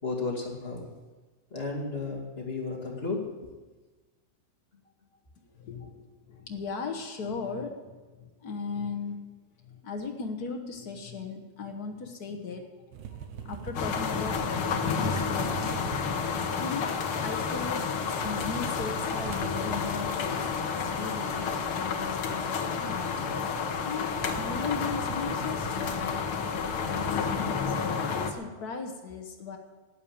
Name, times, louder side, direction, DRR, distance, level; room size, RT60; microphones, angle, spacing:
voice 1, 0.0-0.9 1.5-3.2, left 3 dB, 20° left, -2 dB, 2.0 m, -33 dB
voice 2, 5.5-9.2 9.6-12.7 13.4-14.5 14.8-15.8 16.2-16.9 17.2-23.1 23.7-29.6, left 5 dB, 80° left, 4 dB, 0.8 m, -38 dB
sound 1, 12.9-17.6 18.0-27.7, right 7 dB, 80° right, 2.6 m, -43 dB
sound 2, 13.7-28.3, left 6 dB, 60° left, 1.6 m, -30 dB
12.5 x 10.5 x 8.7 m, 1.3 s
omnidirectional pair, 3.6 m